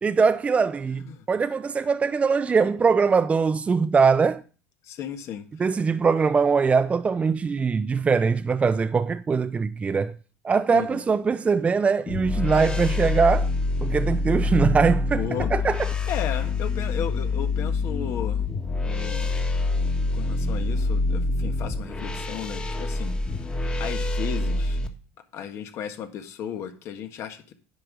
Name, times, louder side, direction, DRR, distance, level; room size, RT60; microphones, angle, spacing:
voice 1, 0.0-4.4 5.6-10.2 10.4-13.5 13.8-15.2 15.5-15.9, right 5 dB, 25° right, 0.5 m, -22 dB
voice 2, 4.8-5.4 10.7-11.0 15.1-15.5 16.1-19.3 20.1-23.5 23.8-24.8 25.3-27.5, left 9 dB, 55° left, 1.5 m, -35 dB
sound 1, 12.1-24.9, left 3 dB, 20° left, 1.6 m, -26 dB
10.5 x 5.3 x 6.2 m
supercardioid pair, 90°, 6 cm